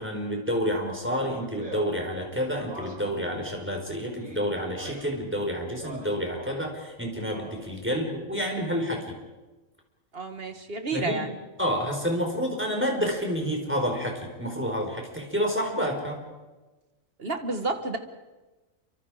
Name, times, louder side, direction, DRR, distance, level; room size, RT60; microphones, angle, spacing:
voice 1, 0.0-9.2 10.9-11.2 11.6-16.2, equal, 10° right, 1 dB, 4.7 m, -29 dB
Speech, 1.0-3.2 4.0-5.2 5.7-6.8 7.1-7.8, right 2 dB, 90° right, 5.2 m, -43 dB
voice 2, 10.1-11.3 17.2-18.0, right 3 dB, 45° right, 7 dB, 1.9 m, -30 dB
28.0 x 25.0 x 5.0 m, 1.2 s
omnidirectional pair, 1.4 m